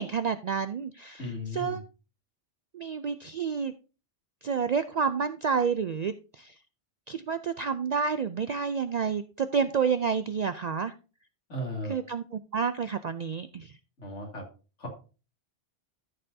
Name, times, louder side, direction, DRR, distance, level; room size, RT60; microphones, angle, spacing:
voice 1, 0.0-1.3 1.5-1.8 2.7-3.7 4.4-6.5 7.1-10.9 11.9-12.2 12.5-13.7, right 6 dB, 65° right, 11 dB, 0.4 m, -29 dB
voice 2, 1.2-1.8 11.5-11.9 14.0-14.4 14.8-14.9, left 1 dB, 90° left, 1 dB, 2.9 m, -36 dB
13.0 x 6.7 x 2.7 m, 0.34 s
omnidirectional pair, 1.2 m